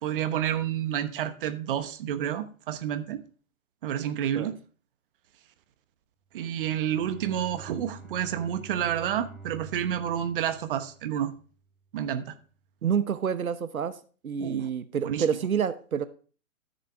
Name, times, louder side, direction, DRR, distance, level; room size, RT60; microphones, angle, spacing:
voice 1, 0.0-3.2 3.8-4.6 6.3-11.3 11.9-12.3 14.4-14.7 15.0-15.2, right 10 dB, 40° right, 1.0 m, -29 dB
Bowed string instrument, 6.4-11.7, right 4 dB, ahead, 2.3 m, -48 dB
voice 2, 12.8-14.0 14.2-16.0, right 7 dB, 75° right, 0.9 m, -28 dB
13.5 x 6.8 x 3.4 m
figure-of-eight pair, 125°, 42 cm